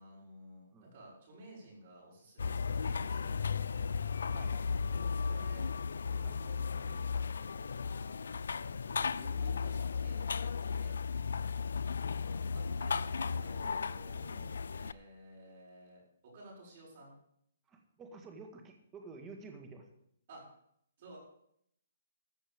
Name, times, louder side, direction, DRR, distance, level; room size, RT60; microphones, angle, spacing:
voice 1, 0.0-3.8 4.9-5.7 6.1-7.3 7.6-8.2 8.6-11.9 12.5-17.2 20.3-20.5 21.0-21.2, right 1 dB, 40° right, -4 dB, 6.4 m, -55 dB
sound 1, 2.4-14.9, left 5 dB, 80° left, 0.5 m, -35 dB
voice 2, 4.3-4.8 6.2-6.4 8.9-9.3 12.0-12.5 17.7-19.9, right 3 dB, 15° right, 4 dB, 1.9 m, -52 dB
14.0 x 7.0 x 7.1 m, 0.70 s
hypercardioid pair, 160°, 0 cm